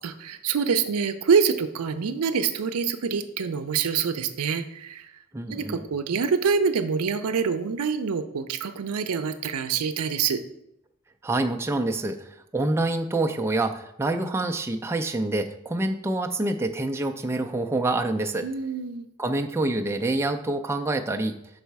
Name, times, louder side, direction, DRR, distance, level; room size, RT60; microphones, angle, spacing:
voice 1, 0.0-5.1 5.5-10.4 18.4-19.1, right 6 dB, 85° right, 9 dB, 0.5 m, -26 dB
voice 2, 5.3-5.8 11.2-18.5 19.2-21.4, right 2 dB, 10° right, 4 dB, 0.3 m, -26 dB
5.5 x 4.1 x 4.6 m, 0.80 s
head